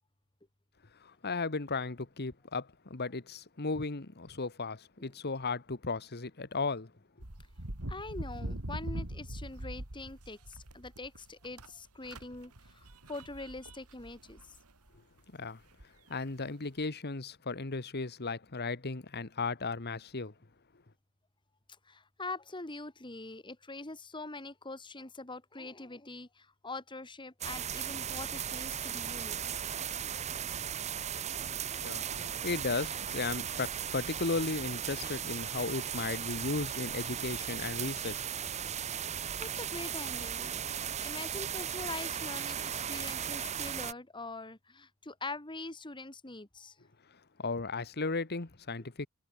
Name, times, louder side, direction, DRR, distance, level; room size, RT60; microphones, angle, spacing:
voice 1, 1.0-6.9 15.3-15.6 16.1-20.3 31.7-38.3 47.4-49.1, left 3 dB, 45° left, 1.4 m, -35 dB
sound 1, 7.2-11.7 12.0-15.0 15.8-16.3, right 1 dB, 85° right, 3.6 m, -42 dB
voice 2, 7.9-14.6 21.9-29.5 31.3-31.4 39.0-40.6 41.0-46.8, left 2 dB, 20° left, 2.2 m, -44 dB
sound 2, 27.4-43.9, right 9 dB, 30° right, 0.6 m, -37 dB
head